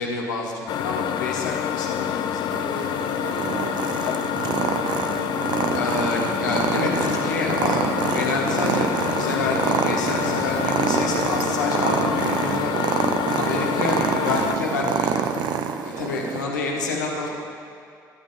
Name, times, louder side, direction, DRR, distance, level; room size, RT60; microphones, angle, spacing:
voice 1, 0.0-2.5 5.7-13.0 13.4-15.4 15.8-17.3, left 3 dB, 80° left, -1 dB, 1.2 m, -28 dB
sound 1, 0.7-14.6, left 10 dB, 50° left, 0.4 m, -27 dB
Purr, 2.5-16.4, right 8 dB, 50° right, 0.5 m, -26 dB
voice 2, 2.6-4.3 15.9-16.9 17.2-17.3, right 1 dB, 80° right, -5 dB, 1.9 m, -40 dB
10.5 x 10.0 x 3.9 m, 2.3 s
figure-of-eight pair, 50°, 10 cm